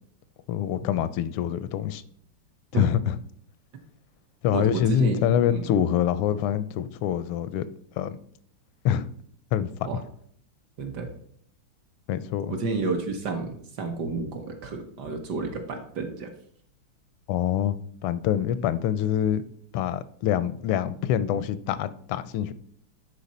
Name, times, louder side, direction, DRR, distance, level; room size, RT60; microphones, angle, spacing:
voice 1, 0.5-2.0 2.7-3.2 4.4-7.7 8.0-8.2 8.8-9.1 9.5-9.9 12.1-12.5 17.3-17.8 18.0-19.4 19.7-22.5, left 10 dB, 85° left, 1.5 m, -25 dB
voice 2, 4.5-5.2 5.5-5.7 9.8-10.0 10.8-11.1 12.5-16.3, right 4 dB, 60° right, 1.3 m, -30 dB
10.0 x 4.4 x 4.1 m
omnidirectional pair, 2.4 m